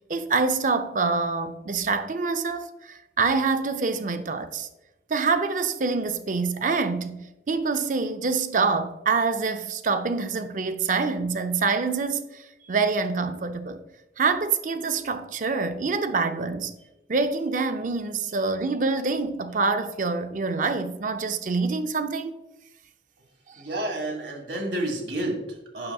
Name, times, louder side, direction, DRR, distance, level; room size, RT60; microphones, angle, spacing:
voice 1, 0.1-4.7 5.1-12.4 12.7-13.8 14.2-16.7 17.1-22.3, right 4 dB, 45° right, 0.5 m, -26 dB
voice 2, 23.6-25.9, right 1 dB, 80° right, 1.7 m, -30 dB
8.7 x 6.5 x 2.3 m
head